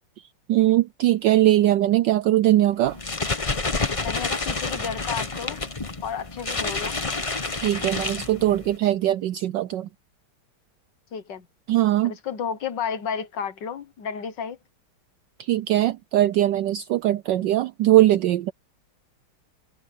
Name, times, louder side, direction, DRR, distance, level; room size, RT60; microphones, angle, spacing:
voice 1, 0.5-3.0 7.5-9.9 11.7-12.1 15.4-18.5, right 14 dB, 75° right, 1.0 m, -20 dB
sound 1, 2.9-8.8, left 3 dB, 25° left, 0.8 m, -29 dB
voice 2, 4.0-5.6 6.0-7.0 11.1-11.5 12.0-14.6, left 7 dB, 60° left, 1.8 m, -32 dB
omnidirectional pair, 2.3 m